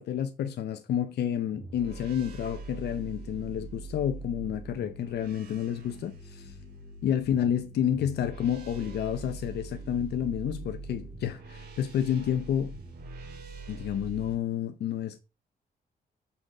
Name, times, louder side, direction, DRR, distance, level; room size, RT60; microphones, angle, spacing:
voice 1, 0.0-6.5 7.0-12.8 13.7-15.2, left 9 dB, 80° left, 0.8 m, -30 dB
sound 1, 1.5-14.3, right 3 dB, 70° right, 3.9 m, -43 dB
7.1 x 6.5 x 5.0 m
wide cardioid pair, 165°, 17 cm